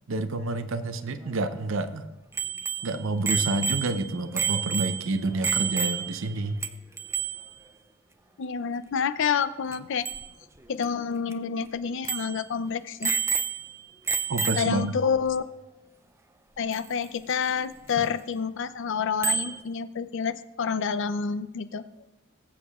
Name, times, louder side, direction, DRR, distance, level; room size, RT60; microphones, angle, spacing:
voice 1, 0.1-2.1 2.8-6.6 14.3-15.0, right 2 dB, 70° right, 10 dB, 0.7 m, -29 dB
Bicycle bell, 2.4-6.3 6.6-6.7 7.0-7.5 9.7-9.8 10.1-10.3 10.8-10.9 11.3-11.4 12.0-12.4 13.0-13.8 14.1-14.9 16.7-16.8 19.2-19.6, right 6 dB, 15° right, 0.4 m, -29 dB
voice 2, 8.4-10.1 10.7-13.2 14.6-15.4 16.6-21.9, left 6 dB, 65° left, 13 dB, 0.5 m, -28 dB
20.0 x 8.0 x 2.4 m, 1.0 s
head